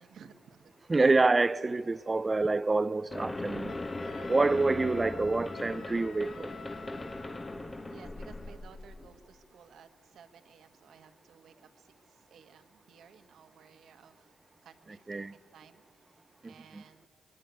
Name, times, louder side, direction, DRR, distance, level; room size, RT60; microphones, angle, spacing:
voice 1, 0.0-0.7 7.4-7.6 7.9-14.3 14.6-17.1, right 7 dB, 65° right, 1.5 m, -57 dB
voice 2, 0.9-3.7 4.3-6.5 15.1-15.3 16.4-16.5, right 3 dB, 20° right, 0.5 m, -27 dB
sound 1, 3.1-9.2, left 2 dB, 20° left, 1.0 m, -39 dB
Wind instrument woodwind instrument, 3.7-7.6, left 4 dB, 50° left, 1.7 m, -47 dB
24.5 x 22.0 x 8.3 m
cardioid pair, 90°, 0 cm